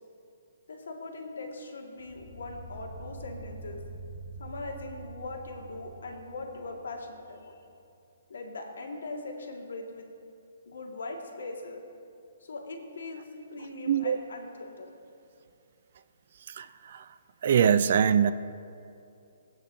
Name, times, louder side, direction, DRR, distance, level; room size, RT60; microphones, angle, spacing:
voice 1, 0.7-3.8 4.4-7.6 8.3-10.1 10.7-11.8 12.4-14.9, left 2 dB, 90° left, 1 dB, 1.8 m, -40 dB
sound 1, 2.0-7.3, right 3 dB, 5° right, 1.1 m, -45 dB
voice 2, 13.9-14.2 16.6-17.0 17.4-18.3, right 8 dB, 45° right, 13 dB, 0.3 m, -23 dB
19.5 x 8.7 x 2.6 m, 2.6 s
hypercardioid pair, 170°, 0 cm